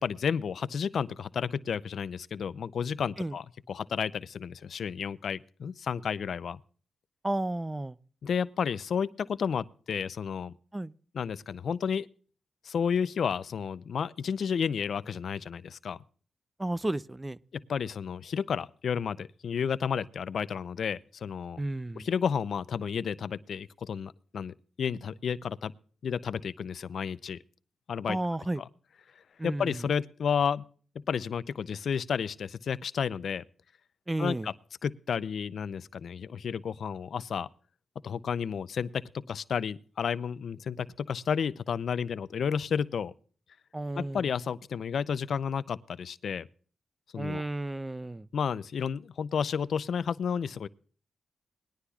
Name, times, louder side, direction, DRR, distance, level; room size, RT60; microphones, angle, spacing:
voice 1, 0.0-6.6 8.2-10.5 11.1-12.1 12.6-16.0 17.5-21.6 22.0-25.7 26.0-27.4 27.9-28.2 29.4-30.6 31.1-33.4 34.2-34.5 34.8-37.5 38.0-43.1 44.0-46.5 47.1-47.4 48.3-50.7, left 7 dB, 70° left, 0.4 m, -31 dB
voice 2, 7.2-8.0 10.7-10.9 16.6-17.4 21.6-22.1 28.1-28.6 29.4-29.8 34.1-34.5 43.7-44.3 47.2-48.3, right 1 dB, 15° right, 0.4 m, -32 dB
20.0 x 11.5 x 2.3 m
cardioid pair, 80°, 0 cm